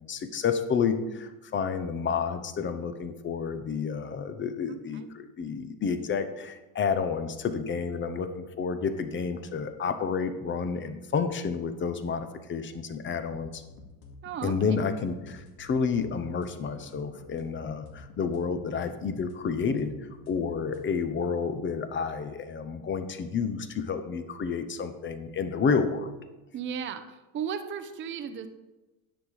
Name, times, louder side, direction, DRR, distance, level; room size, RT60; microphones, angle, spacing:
voice 1, 0.0-13.6 14.4-26.1, left 5 dB, 25° left, 9 dB, 0.8 m, -30 dB
voice 2, 4.7-5.1 14.2-14.8 26.5-28.5, right 7 dB, 25° right, 8 dB, 0.7 m, -36 dB
sound 1, 13.3-20.9, left 4 dB, 55° left, 2.2 m, -51 dB
10.5 x 7.2 x 4.8 m, 1.0 s
cardioid pair, 135°, 44 cm